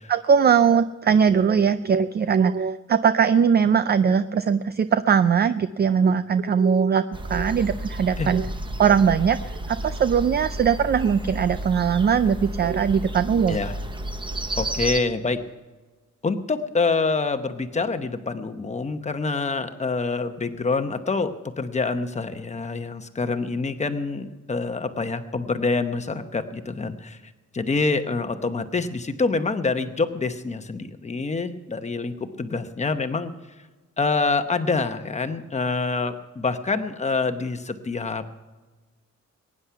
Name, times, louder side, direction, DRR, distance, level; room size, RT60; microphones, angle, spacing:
voice 1, 0.1-8.5 8.8-13.6, right 7 dB, 35° right, 13 dB, 0.4 m, -20 dB
sound 1, 7.1-15.0, right 1 dB, 15° right, 0.8 m, -32 dB
voice 2, 14.6-15.4 16.2-27.2 27.5-33.3 34.0-38.3, left 4 dB, 25° left, 8 dB, 0.9 m, -26 dB
22.0 x 9.8 x 5.7 m, 1.3 s
wide cardioid pair, 175°, 29 cm